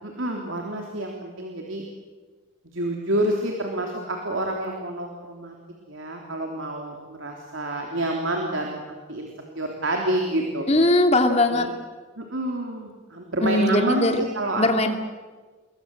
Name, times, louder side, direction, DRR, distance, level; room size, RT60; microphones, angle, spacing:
voice 1, 0.0-1.8 2.6-5.5 5.9-9.3 9.6-10.7 11.5-11.7 12.2-14.1 14.4-14.7, right 1 dB, 70° right, 1 dB, 3.5 m, -28 dB
voice 2, 10.7-11.7 13.4-14.2 14.6-14.9, left 1 dB, 30° left, 5 dB, 2.7 m, -20 dB
29.0 x 22.0 x 8.0 m, 1.4 s
head